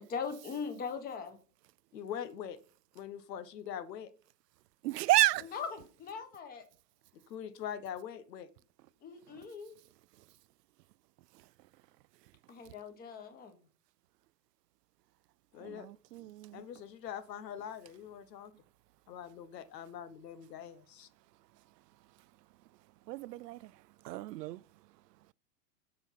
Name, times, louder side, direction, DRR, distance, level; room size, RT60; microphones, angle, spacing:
voice 1, 0.0-1.4 5.4-6.6 9.0-9.7 12.5-13.6, left 6 dB, 20° left, 1.3 m, -40 dB
voice 2, 1.9-2.6 2.9-4.1 7.3-8.5 15.5-15.9 16.2-18.5 19.1-21.1, left 9 dB, 85° left, 1.2 m, -43 dB
voice 3, 4.8-5.5 15.6-16.6 23.1-23.7 24.0-24.6, right 17 dB, 80° right, 0.5 m, -31 dB
7.9 x 6.2 x 5.7 m
supercardioid pair, 155°, 48 cm